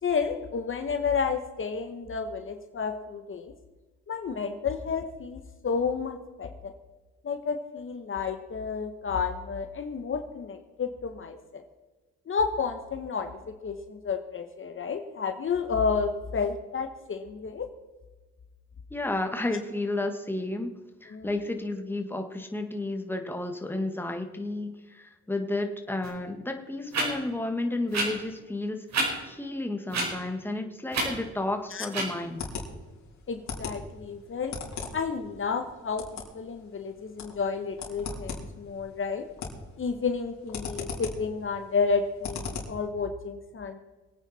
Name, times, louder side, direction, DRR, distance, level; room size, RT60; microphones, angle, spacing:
voice 1, 0.0-3.5 4.1-6.7 7.2-11.6 12.3-17.7 21.1-21.3 31.7-31.9 33.3-34.5 34.9-39.2 39.8-43.8, left 5 dB, 45° left, 6 dB, 1.4 m, -31 dB
voice 2, 18.9-32.5, left 2 dB, 5° left, 4 dB, 1.9 m, -32 dB
sound 1, 26.0-26.1 26.9-27.1 27.9-28.0 28.9-29.1 29.9-30.1 30.9-31.1 31.9-32.0, right 3 dB, 60° right, 5.4 m, -27 dB
sound 2, 32.2-42.9, left 4 dB, 65° left, 3.9 m, -40 dB
23.0 x 9.1 x 4.4 m, 1.2 s
cardioid pair, 90°, 30 cm